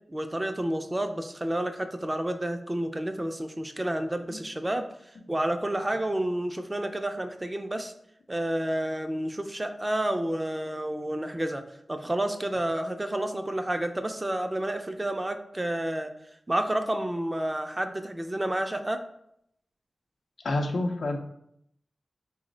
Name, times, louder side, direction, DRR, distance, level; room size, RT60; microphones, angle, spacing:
voice 1, 0.1-4.8 5.3-7.9 8.3-11.6 11.9-16.1 16.5-19.0, right 1 dB, 20° right, 6 dB, 0.3 m, -30 dB
voice 2, 20.4-21.2, left 2 dB, 85° left, 3 dB, 0.5 m, -28 dB
4.2 x 2.1 x 3.7 m, 0.75 s
cardioid pair, 60°, 0 cm